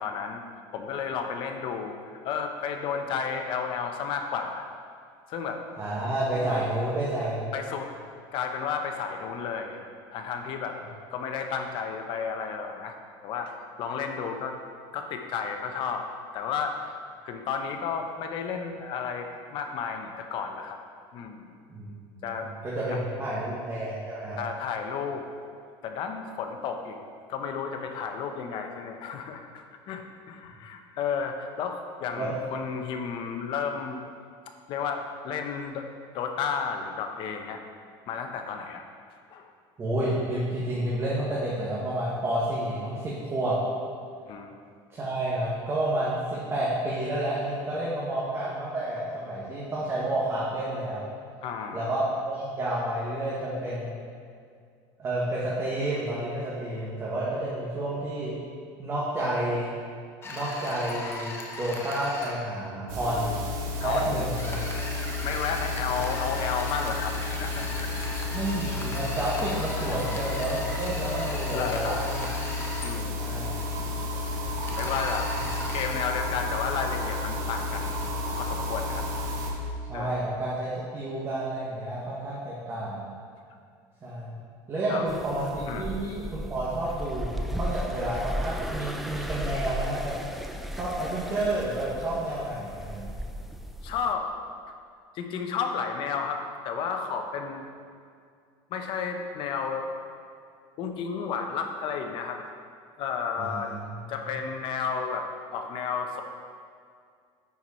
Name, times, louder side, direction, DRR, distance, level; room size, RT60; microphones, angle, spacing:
voice 1, 0.0-2.0 2.2-4.6 5.3-5.6 6.3-6.6 7.5-7.9 8.3-9.8 10.1-10.8 11.1-12.9 13.2-14.6 14.9-16.1 16.3-16.9 17.2-20.8 21.1-21.5 22.2-22.5 22.9-23.0 24.3-25.2 25.8-27.0 27.3-34.0 34.7-35.8 36.1-37.6 38.1-38.8 39.3-39.5 44.3-44.5 51.4-51.9 63.8-64.3 65.2-68.1 69.5-69.9 71.5-72.0 72.8-73.5 74.7-75.3 75.7-78.0 78.3-79.1 79.9-80.2 84.9-85.1 85.7-86.0 93.8-94.3 95.1-97.7 98.7-99.9 100.8-102.4 103.0-103.7 104.1-105.3 105.5-106.2, left 6 dB, 50° left, 5 dB, 0.8 m, -32 dB
voice 2, 5.8-7.5 21.7-24.4 32.2-32.3 39.8-43.5 44.9-51.0 51.7-53.9 55.0-58.3 58.8-59.7 60.2-63.3 63.8-64.6 68.3-72.3 73.2-73.6 79.9-83.1 84.0-84.4 84.7-90.1 90.7-93.1 103.4-103.8, right 1 dB, 25° right, -7 dB, 1.4 m, -30 dB
sound 1, 60.2-62.3 64.3-72.9 74.6-75.8, left 2 dB, 20° left, 0.9 m, -38 dB
sound 2, 62.9-79.5, left 2 dB, 65° right, 1.8 m, -32 dB
sound 3, 85.1-94.1, equal, ahead, 0.4 m, -35 dB
9.4 x 4.7 x 4.3 m, 2.2 s
cardioid pair, 145°, 11 cm